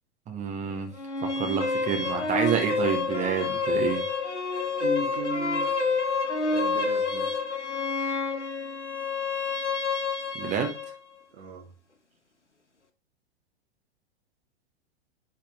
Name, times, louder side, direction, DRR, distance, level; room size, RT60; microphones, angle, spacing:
voice 1, 0.3-0.9 1.2-4.1 10.3-10.7, right 7 dB, 20° right, 1.6 m, -28 dB
sound 1, 1.0-10.9, left 4 dB, 90° left, 1.3 m, -28 dB
voice 2, 4.8-5.9 6.5-7.4 11.3-11.7, right 1 dB, 65° right, 1.8 m, -35 dB
10.5 x 4.4 x 3.8 m
figure-of-eight pair, 105°, 34 cm